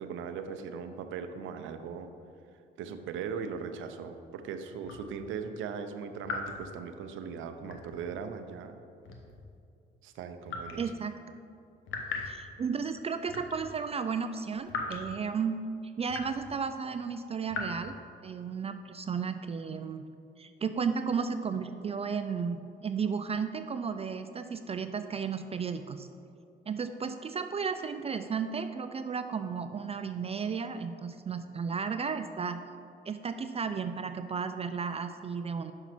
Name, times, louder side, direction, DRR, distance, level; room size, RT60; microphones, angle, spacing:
voice 1, 0.0-2.1 2.8-8.8 10.0-10.8 12.1-12.4, right 6 dB, 80° right, 8 dB, 0.6 m, -39 dB
sound 1, 4.8-5.1 6.2-6.6 7.6-8.0 9.1-9.5 10.5-10.8 11.9-12.4 13.3-13.6 14.7-15.0 16.1-16.5 17.5-17.7, left 4 dB, 80° left, 1.1 m, -37 dB
voice 2, 10.8-11.1 12.2-15.6 16.0-18.0 18.2-20.0 20.4-26.1 26.7-32.6 33.1-35.7, right 6 dB, 30° right, 9 dB, 0.3 m, -34 dB
5.9 x 5.5 x 5.9 m, 2.6 s
cardioid pair, 80°, 20 cm